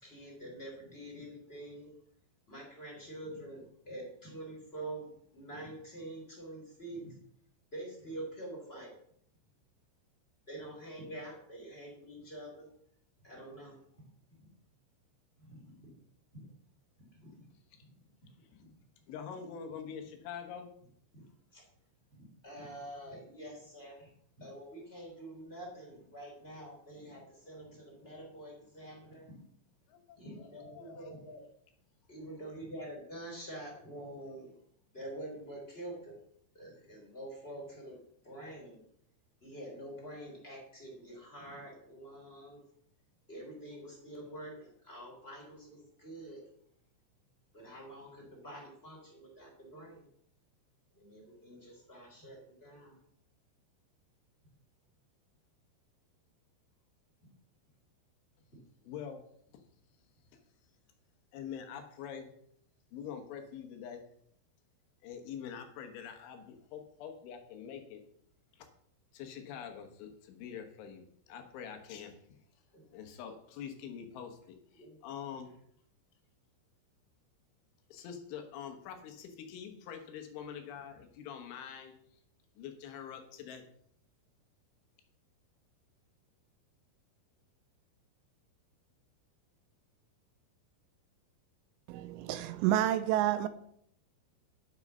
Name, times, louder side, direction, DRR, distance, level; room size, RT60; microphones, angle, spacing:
voice 1, 0.0-1.9 2.5-5.1 5.3-7.1 7.7-8.9 10.5-12.7 13.2-13.8 15.4-15.9 17.2-17.5 17.8-17.9 21.1-21.2 21.5-21.7 22.1-24.1 24.4-29.4 30.2-31.5 32.1-34.5 34.9-36.2 36.5-38.0 38.2-38.8 39.4-42.6 43.3-46.4 47.5-50.0 50.9-53.0 72.7-72.8 74.8-75.0, right 1 dB, 15° left, 2.7 m, -46 dB
voice 2, 19.1-20.7 29.9-30.5 30.7-31.1 58.8-59.2 59.5-59.6 61.3-62.3 62.9-64.0 65.0-68.0 68.5-68.7 69.1-72.4 72.9-75.5 77.9-82.0 82.6-83.6, left 8 dB, 75° left, 3.5 m, -45 dB
voice 3, 91.9-93.5, right 12 dB, 85° right, 3.0 m, -29 dB
10.5 x 7.4 x 5.4 m
omnidirectional pair, 5.6 m